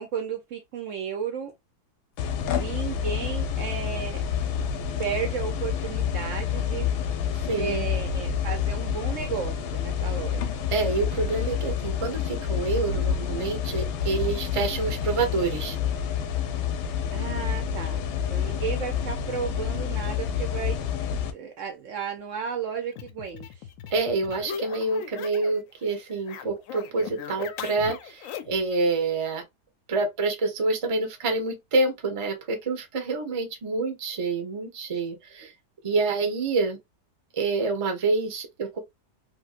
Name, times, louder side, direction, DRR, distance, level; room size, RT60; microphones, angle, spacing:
voice 1, 0.0-1.5 2.4-4.2 5.0-6.9 7.5-10.5 17.1-18.0 18.3-20.8 21.3-23.7 35.9-36.0, right 7 dB, 70° right, 0.8 m, -33 dB
sound 1, 2.2-21.3, left 8 dB, 85° left, 1.2 m, -28 dB
voice 2, 7.3-7.8 10.7-15.8 23.9-29.4 29.9-35.5 35.8-36.8 37.3-38.8, right 3 dB, 35° right, 0.5 m, -27 dB
sound 2, 22.9-25.6 25.9-28.7, left 8 dB, 70° left, 0.8 m, -39 dB
3.5 x 2.6 x 2.4 m
omnidirectional pair, 1.7 m